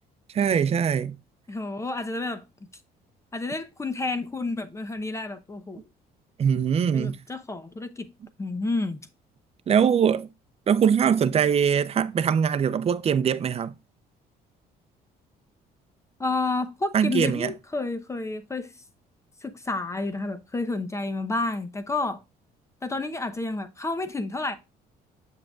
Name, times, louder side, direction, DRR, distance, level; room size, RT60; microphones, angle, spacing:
voice 1, 0.3-1.1 6.4-7.2 9.7-10.3 10.7-13.7 16.9-17.5, right 7 dB, 35° right, 0.6 m, -22 dB
voice 2, 1.5-2.4 3.3-5.8 6.9-8.1 8.4-9.0 16.2-18.7 19.4-22.2 22.8-24.5, left 3 dB, 15° left, 0.8 m, -30 dB
7.5 x 6.5 x 2.4 m
cardioid pair, 110°, 17 cm